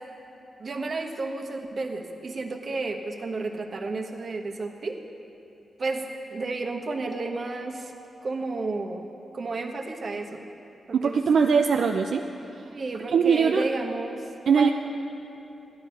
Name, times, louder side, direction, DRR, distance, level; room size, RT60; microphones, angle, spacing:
voice 1, 0.6-5.0 5.8-7.9 8.2-9.1 9.3-10.4 10.9-11.2 12.7-14.7, right 3 dB, 50° right, 3 dB, 1.2 m, -32 dB
voice 2, 10.9-12.3 12.6-12.7 13.1-13.6 14.5-14.7, right 6 dB, 75° right, 3 dB, 0.5 m, -21 dB
14.0 x 10.0 x 5.5 m, 2.9 s
cardioid pair, 85°, 0 cm